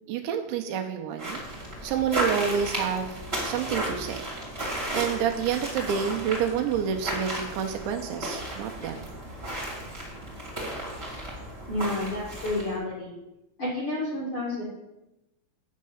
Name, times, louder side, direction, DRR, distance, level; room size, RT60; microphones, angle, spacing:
voice 1, 0.1-1.4 1.8-4.2 4.8-9.1, right 8 dB, 80° right, 4 dB, 2.9 m, -29 dB
sound 1, 1.2-12.8, right 1 dB, 20° right, 1.7 m, -34 dB
voice 2, 11.7-13.1 13.6-14.6, left 2 dB, 65° left, -5 dB, 1.3 m, -30 dB
8.4 x 6.4 x 7.1 m, 0.96 s
omnidirectional pair, 5.5 m